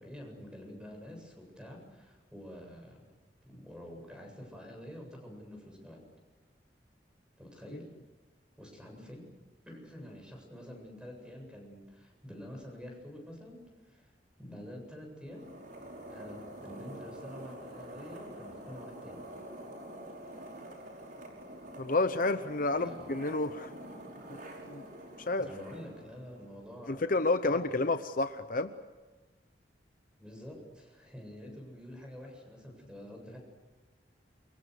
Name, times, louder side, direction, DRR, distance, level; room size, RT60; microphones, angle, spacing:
voice 1, 0.0-3.1 3.4-6.0 7.4-7.9 8.6-9.2 9.6-14.1 14.4-15.5 16.1-19.2 22.7-23.2 25.4-27.1 27.4-27.8 30.2-33.4, equal, 5° right, 2 dB, 7.9 m, -47 dB
sound 1, 15.3-26.8, right 1 dB, 50° right, 5.5 m, -47 dB
voice 2, 21.8-23.7 24.6-24.8 25.2-25.5 26.9-28.7, left 2 dB, 50° left, 10 dB, 0.9 m, -30 dB
29.0 x 25.0 x 6.6 m, 1.2 s
head